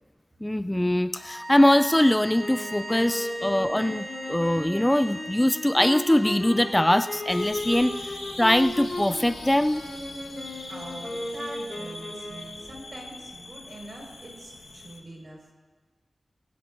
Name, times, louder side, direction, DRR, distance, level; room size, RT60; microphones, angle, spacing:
voice 1, 0.4-9.8, left 1 dB, 15° left, 11 dB, 0.3 m, -22 dB
sound 1, 1.1-7.3, right 1 dB, 20° right, 2.5 m, -40 dB
sound 2, 2.4-12.7, left 1 dB, 55° left, 4.0 m, -35 dB
sound 3, 7.3-15.0, left 2 dB, 90° left, 1.4 m, -42 dB
voice 2, 10.7-15.5, right 1 dB, 55° right, 0 dB, 5.1 m, -43 dB
21.5 x 16.0 x 2.6 m, 1.3 s
cardioid pair, 50°, 0 cm